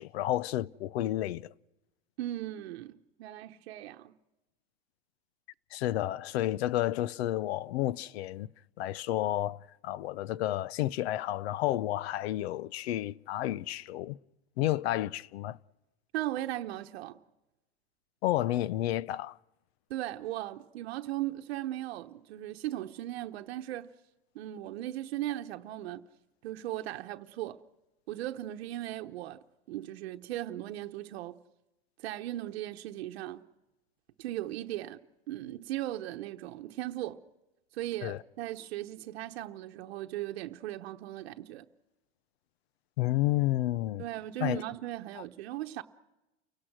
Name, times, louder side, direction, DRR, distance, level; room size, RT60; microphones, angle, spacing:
voice 1, 0.0-1.5 5.7-8.5 8.8-14.2 14.6-15.6 18.2-19.4 38.0-38.2 43.0-44.0 44.4-44.6 45.2-45.3, left 14 dB, 85° left, 0.7 m, -31 dB
voice 2, 2.2-4.2 16.1-17.2 19.9-23.9 24.3-26.1 26.4-27.6 28.1-31.4 32.0-33.4 34.2-35.0 35.3-37.2 37.7-41.7 44.0-45.8, right 14 dB, 85° right, 1.0 m, -37 dB
30.0 x 17.5 x 6.1 m
supercardioid pair, 165°, 31 cm